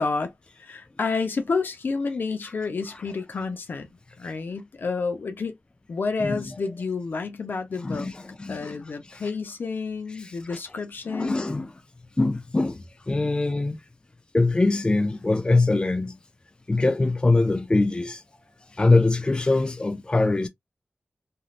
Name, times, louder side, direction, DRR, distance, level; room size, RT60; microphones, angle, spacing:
voice 1, 0.0-3.9 4.2-5.5 5.9-8.1 8.5-11.5, left 4 dB, 65° left, 0.7 m, -29 dB
voice 2, 7.8-8.8 9.1-9.2 10.2-10.3 11.1-11.7 12.2-13.8 14.3-16.2 16.7-18.2 18.7-20.5, left 2 dB, 25° left, 0.4 m, -23 dB
3.2 x 2.6 x 2.4 m
cardioid pair, 60°, 4 cm